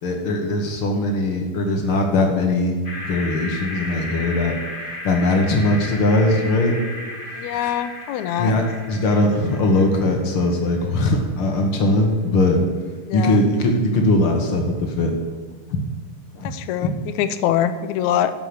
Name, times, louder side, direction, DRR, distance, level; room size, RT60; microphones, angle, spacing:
voice 1, 0.0-2.8 3.1-4.5 5.0-6.7 8.4-8.6 8.9-12.6 13.1-15.1 16.3-16.5, left 2 dB, 50° left, 3 dB, 1.8 m, -20 dB
sound 1, 2.8-11.1, left 1 dB, 30° left, 0.9 m, -35 dB
voice 2, 7.3-8.5 13.1-13.4 16.4-18.3, left 10 dB, 80° left, 11 dB, 1.7 m, -24 dB
11.0 x 6.9 x 7.9 m, 1.4 s
omnidirectional pair, 3.8 m